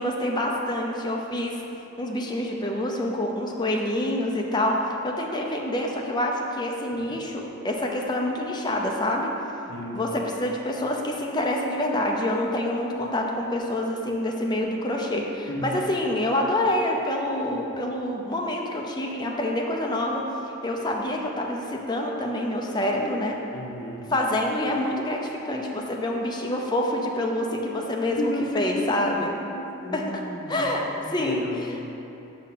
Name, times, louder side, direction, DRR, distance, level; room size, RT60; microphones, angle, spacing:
voice 1, 0.0-1.6 2.0-4.8 5.0-9.3 9.9-20.3 20.6-23.4 24.1-29.3 29.9-30.2 30.5-30.8 31.1-31.7, left 1 dB, 20° left, 0 dB, 0.6 m, -27 dB
voice 2, 9.7-10.2 15.5-15.9 23.5-24.1 28.2-31.7, left 1 dB, 60° left, -2 dB, 1.0 m, -34 dB
6.1 x 4.2 x 5.7 m, 2.9 s
head